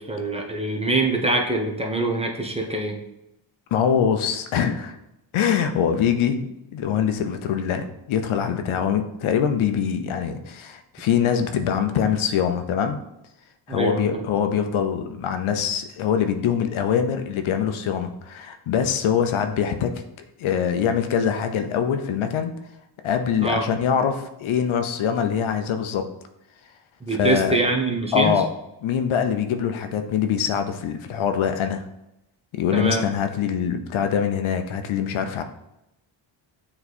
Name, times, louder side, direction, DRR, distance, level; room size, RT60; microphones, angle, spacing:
voice 1, 0.0-3.0 13.7-14.2 23.4-23.7 27.0-28.3 32.7-33.0, right 2 dB, 15° right, 1 dB, 1.0 m, -24 dB
voice 2, 3.7-5.0 5.3-13.0 13.7-19.9 20.4-22.5 23.0-26.0 27.1-27.6 28.1-28.5 28.8-31.8 32.5-35.4, left 8 dB, 80° left, 7 dB, 0.8 m, -23 dB
7.1 x 3.3 x 4.2 m, 0.86 s
cardioid pair, 80°, 48 cm